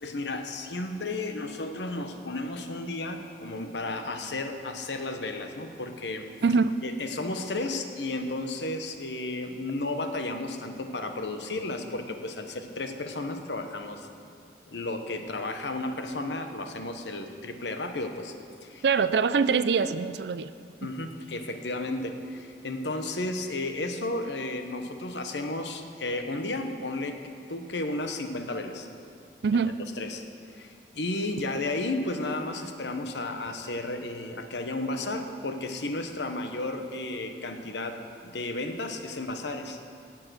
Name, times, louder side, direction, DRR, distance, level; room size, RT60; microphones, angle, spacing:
voice 1, 0.0-6.3 6.8-14.1 14.7-18.3 18.6-18.8 20.8-27.2 27.5-28.9 30.0-30.2 30.5-40.0, left 2 dB, 85° left, 6 dB, 1.0 m, -33 dB
voice 2, 6.4-6.8 18.8-20.5 20.8-20.9 29.4-29.8, right 5 dB, 70° right, 13 dB, 0.4 m, -24 dB
18.0 x 7.5 x 6.3 m, 2.4 s
head